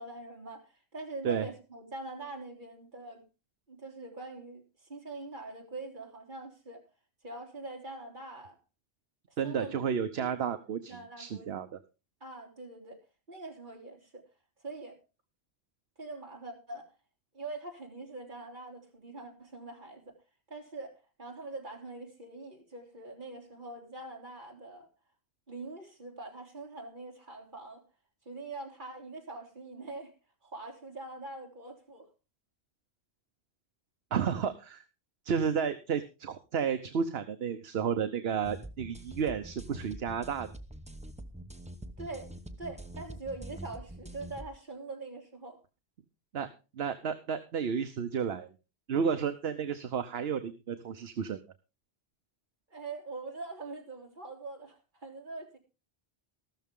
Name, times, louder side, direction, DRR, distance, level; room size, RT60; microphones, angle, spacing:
voice 1, 0.0-3.2 3.7-6.8 7.2-8.6 9.4-9.7 10.2-10.6 10.9-11.5 12.2-13.0 13.3-14.2 14.6-15.0 16.0-16.9 17.3-20.1 20.5-24.9 25.5-27.8 28.2-30.1 30.4-32.1 42.0-42.3 42.6-45.6 52.7-55.6, right 2 dB, 50° right, 3.4 m, -43 dB
voice 2, 9.4-11.8 34.1-34.8 35.2-40.5 46.3-46.5 46.8-48.5 48.9-51.4, right 7 dB, 70° right, 1.1 m, -32 dB
sound 1, 38.4-44.5, right 1 dB, 5° right, 0.9 m, -45 dB
14.0 x 13.0 x 3.7 m
omnidirectional pair, 1.1 m